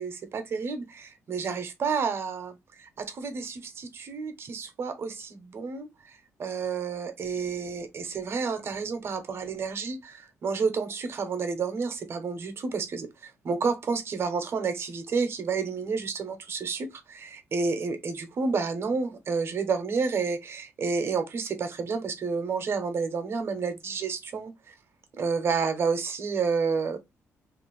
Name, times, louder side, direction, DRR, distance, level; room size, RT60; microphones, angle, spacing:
voice 1, 0.0-24.7 25.2-27.0, right 5 dB, 50° right, 0.8 m, -30 dB
2.7 x 2.5 x 3.1 m
cardioid pair, 110°, 5 cm